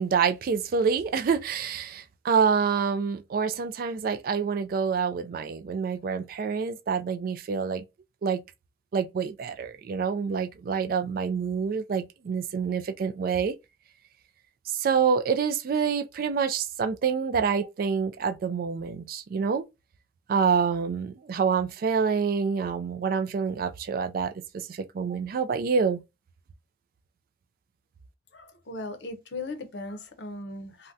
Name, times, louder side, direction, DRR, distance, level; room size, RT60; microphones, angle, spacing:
voice 1, 0.0-7.9 8.2-8.4 8.9-13.5 14.7-19.6 20.3-26.0, right 6 dB, 50° right, 0.3 m, -27 dB
voice 2, 28.3-30.9, left 2 dB, 65° left, 0.6 m, -38 dB
3.4 x 2.1 x 2.6 m
head